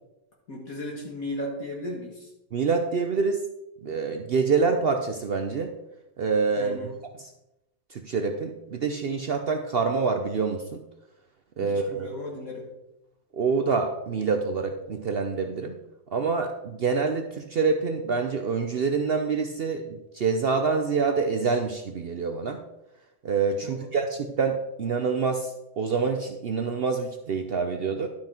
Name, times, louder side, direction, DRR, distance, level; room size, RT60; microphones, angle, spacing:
voice 1, 0.5-2.3 6.6-6.9 11.6-12.7 23.6-23.9, left 1 dB, 55° left, -2 dB, 2.0 m, -36 dB
voice 2, 2.5-3.4 3.8-5.7 6.2-6.8 7.2-7.3 7.9-10.8 11.6-12.1 13.3-15.8 16.1-22.6 23.2-28.1, right 5 dB, 70° right, 5 dB, 0.5 m, -26 dB
11.5 x 5.9 x 4.4 m, 0.90 s
omnidirectional pair, 1.9 m